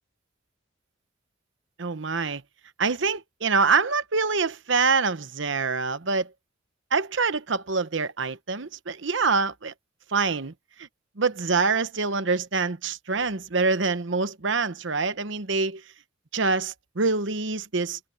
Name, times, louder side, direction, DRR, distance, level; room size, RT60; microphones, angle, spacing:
voice 1, 1.8-2.4 2.8-6.3 6.9-9.7 10.1-10.5 10.8-10.9 11.2-15.8 16.3-18.0, right 4 dB, 70° right, 1.0 m, -25 dB
head